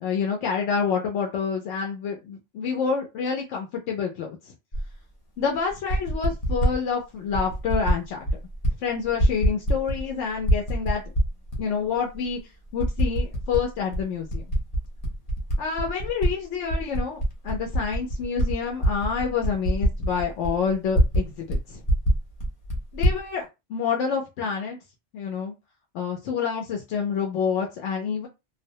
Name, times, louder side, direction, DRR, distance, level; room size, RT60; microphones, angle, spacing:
voice 1, 0.0-4.5 5.4-8.3 8.8-11.0 11.6-12.4 12.7-14.4 15.6-21.8 22.9-23.4 23.7-24.8 25.1-25.5 25.9-28.3, left 6 dB, 85° left, 0 dB, 0.9 m, -28 dB
Typing, 4.7-4.9 5.7-6.8 7.3-8.0 8.2-8.7 9.0-10.1 10.4-11.6 12.1-12.2 12.8-13.6 13.9-16.3 16.6-21.2 21.5-21.6 21.8-23.2, equal, 50° left, 0.9 m, -24 dB
2.3 x 2.1 x 2.7 m, 0.25 s
omnidirectional pair, 1.2 m